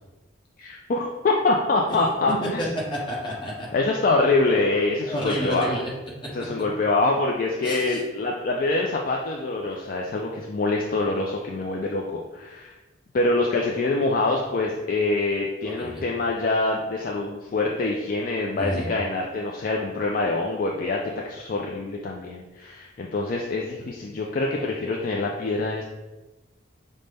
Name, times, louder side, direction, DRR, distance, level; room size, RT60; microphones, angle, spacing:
voice 1, 0.6-2.7 3.7-5.8 6.3-12.7 13.1-21.0 21.2-25.8, left 2 dB, 45° left, -1 dB, 0.3 m, -25 dB
voice 2, 2.4-3.7 5.1-5.9 7.6-8.0 15.8-16.0 18.5-18.9, equal, 25° left, -5 dB, 1.0 m, -29 dB
5.2 x 2.1 x 3.3 m, 1.1 s
head